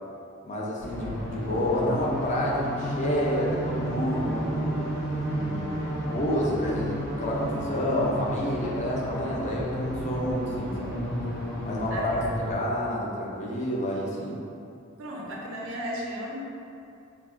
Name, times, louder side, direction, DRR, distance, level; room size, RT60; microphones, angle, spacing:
voice 1, 0.4-4.7 5.3-10.9 11.7-12.2 12.5-14.4, left 1 dB, 35° left, -4 dB, 0.4 m, -29 dB
sound 1, 0.8-12.5, equal, 65° left, 1.1 m, -32 dB
voice 2, 11.9-12.3 15.0-16.4, equal, 70° right, -2 dB, 0.5 m, -35 dB
3.4 x 2.1 x 2.3 m, 2.5 s
head